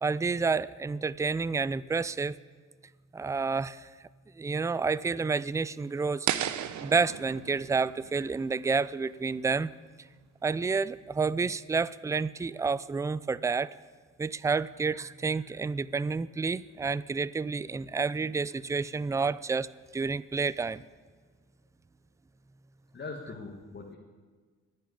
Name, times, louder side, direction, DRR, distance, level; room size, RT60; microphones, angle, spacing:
voice 1, 0.0-2.4 3.1-3.9 4.4-6.3 6.8-9.7 10.4-13.7 14.2-20.8, right 4 dB, 10° right, 19 dB, 0.3 m, -29 dB
sound 1, 6.3-9.3, right 11 dB, 70° right, 0.8 m, -35 dB
voice 2, 22.9-24.0, left 3 dB, 35° left, 0 dB, 1.6 m, -41 dB
10.5 x 9.9 x 9.8 m, 1.5 s
cardioid pair, 90°, 30 cm